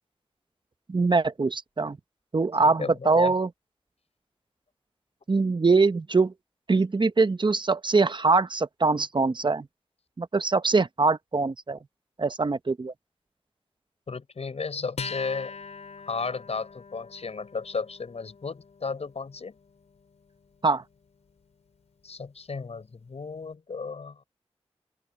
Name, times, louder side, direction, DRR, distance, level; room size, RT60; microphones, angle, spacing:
voice 1, 0.9-2.0 2.3-3.5 5.3-6.3 6.7-9.7 10.2-11.8 12.2-12.9 20.6-20.8, right 3 dB, 45° right, 0.9 m, -23 dB
voice 2, 2.6-3.3 14.1-15.5 16.1-19.6 22.0-24.2, left 4 dB, 75° left, 6.5 m, -34 dB
Acoustic guitar, 15.0-21.8, left 5 dB, 90° left, 6.8 m, -43 dB
cardioid pair, 50°, 11 cm